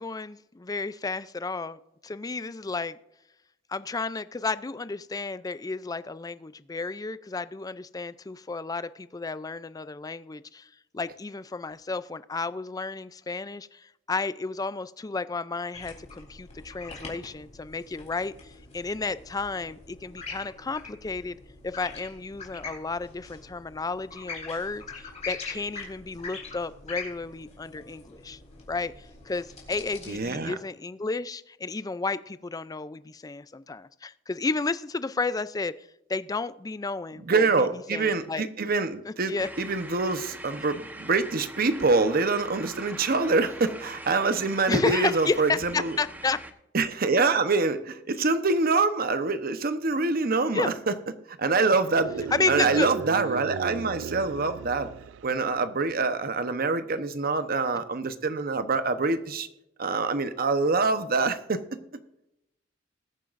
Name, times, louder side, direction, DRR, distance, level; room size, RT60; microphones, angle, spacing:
voice 1, 0.0-3.0 3.7-21.4 21.6-28.4 28.7-28.9 29.3-35.7 36.1-38.4 39.1-39.5 44.7-46.4 47.1-47.3 50.5-50.7 52.3-52.9, left 3 dB, 20° left, 15 dB, 0.4 m, -32 dB
sound 1, 15.7-30.2, left 4 dB, 35° left, 3.6 m, -43 dB
voice 2, 30.1-30.5 37.3-46.0 46.7-50.9 51.3-54.9 55.2-59.5 59.8-61.6, right 3 dB, 50° right, 10 dB, 0.9 m, -25 dB
sound 2, 39.4-46.5, right 1 dB, 10° right, 1.0 m, -43 dB
sound 3, 51.9-55.5, right 7 dB, 70° right, 0.3 m, -36 dB
20.5 x 9.0 x 2.6 m, 0.87 s
head